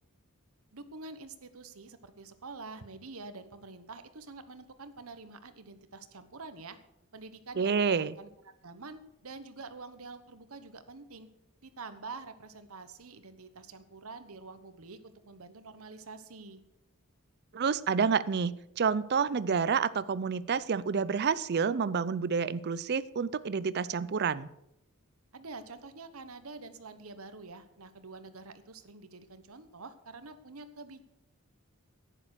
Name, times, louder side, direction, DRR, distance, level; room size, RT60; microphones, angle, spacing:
voice 1, 0.7-6.8 7.1-11.3 11.6-16.6 25.3-31.0, right 3 dB, 75° right, 10 dB, 1.2 m, -47 dB
voice 2, 7.6-8.2 17.5-24.5, right 6 dB, 50° right, 18 dB, 0.5 m, -29 dB
11.0 x 10.0 x 6.6 m, 0.85 s
head